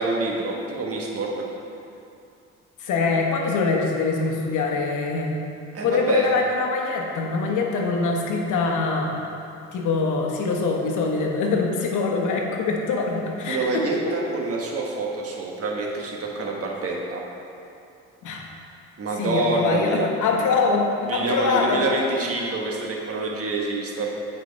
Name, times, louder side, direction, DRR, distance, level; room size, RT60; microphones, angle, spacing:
voice 1, 0.0-1.4 5.7-6.3 13.5-17.2 19.0-20.1 21.1-24.1, right 2 dB, 50° right, -1 dB, 1.3 m, -26 dB
voice 2, 2.8-5.5 5.8-9.2 9.7-14.0 18.2-18.4 19.1-21.8, left 4 dB, 80° left, 1 dB, 1.1 m, -24 dB
8.7 x 4.6 x 4.1 m, 2.6 s
cardioid pair, 90°, 30 cm